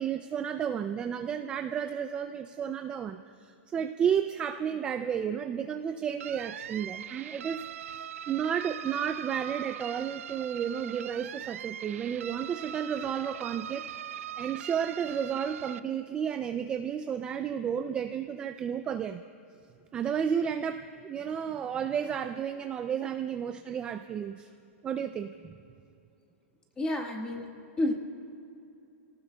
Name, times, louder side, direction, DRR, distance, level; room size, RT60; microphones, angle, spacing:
voice 1, 0.0-7.6 8.3-13.9 14.4-19.2 19.9-24.5 24.8-25.6, right 8 dB, 15° right, 7 dB, 0.3 m, -32 dB
sound 1, 6.2-15.8, right 10 dB, 75° right, 0.5 m, -41 dB
voice 2, 26.8-27.5 27.8-27.9, left 1 dB, 10° left, 2 dB, 1.4 m, -29 dB
29.5 x 18.0 x 2.3 m, 2.6 s
hypercardioid pair, 165°, 7 cm